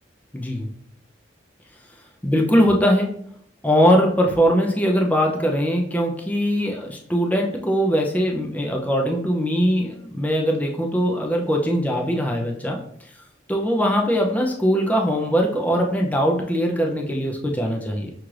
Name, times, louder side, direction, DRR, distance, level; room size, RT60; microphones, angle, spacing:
voice 1, 0.3-0.7 2.2-3.1 3.6-12.8 13.5-18.1, equal, 10° left, 0 dB, 0.4 m, -21 dB
5.9 x 2.4 x 3.1 m, 0.66 s
head